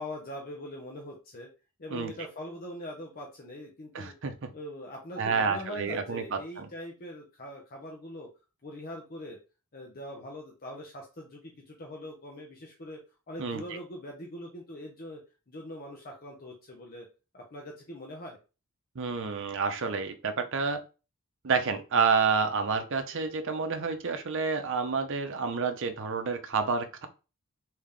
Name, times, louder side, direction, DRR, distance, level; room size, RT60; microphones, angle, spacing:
voice 1, 0.0-1.5 1.8-4.1 4.5-8.3 8.6-9.4 9.7-13.0 13.3-15.2 15.5-17.1 17.3-18.4, left 1 dB, 40° left, 0 dB, 0.7 m, -42 dB
voice 2, 3.9-4.5 5.2-6.7 13.4-13.8 19.0-20.8 21.4-27.1, right 5 dB, 60° right, 7 dB, 0.6 m, -29 dB
3.4 x 2.8 x 3.7 m, 0.31 s
head